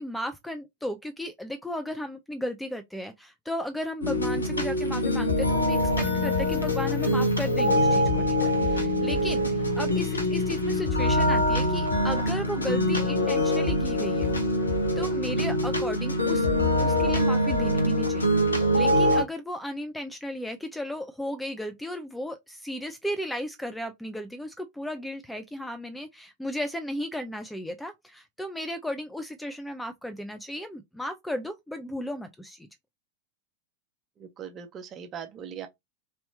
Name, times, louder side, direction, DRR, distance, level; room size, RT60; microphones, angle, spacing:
voice 1, 0.0-14.3 15.0-16.5 16.8-18.4 18.7-32.7, equal, 5° left, 0.6 m, -35 dB
sound 1, 4.0-19.2, left 1 dB, 75° left, 1.2 m, -24 dB
voice 2, 34.2-35.7, right 8 dB, 30° right, 1.1 m, -40 dB
4.2 x 3.4 x 2.7 m
figure-of-eight pair, 90°, 0 cm